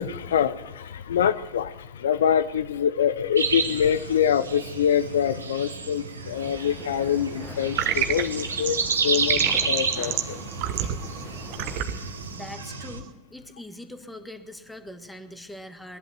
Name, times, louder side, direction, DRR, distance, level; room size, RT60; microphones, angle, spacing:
voice 1, 0.0-10.4, left 8 dB, 75° left, 14 dB, 0.5 m, -25 dB
sound 1, 3.4-13.0, right 4 dB, 90° right, 1.3 m, -31 dB
sound 2, 6.3-11.8, left 5 dB, 25° left, 1.1 m, -43 dB
sound 3, 7.8-13.1, right 10 dB, 50° right, 1.2 m, -30 dB
voice 2, 12.3-16.0, left 1 dB, 5° left, 8 dB, 1.5 m, -42 dB
19.0 x 11.5 x 6.6 m, 1.3 s
hypercardioid pair, 90°, 0 cm